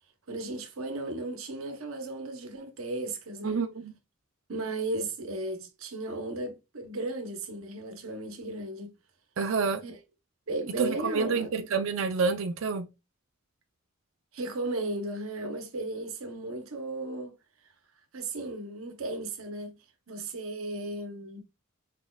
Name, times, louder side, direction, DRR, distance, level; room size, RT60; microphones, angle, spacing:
voice 1, 0.3-3.6 4.5-8.9 9.8-10.0 10.5-11.5 14.3-17.3 18.1-19.8 20.1-21.4, right 2 dB, 85° right, 0.8 m, -35 dB
voice 2, 3.4-3.9 9.4-9.8 10.8-12.9, right 5 dB, 65° right, 0.5 m, -28 dB
4.5 x 4.2 x 2.3 m
head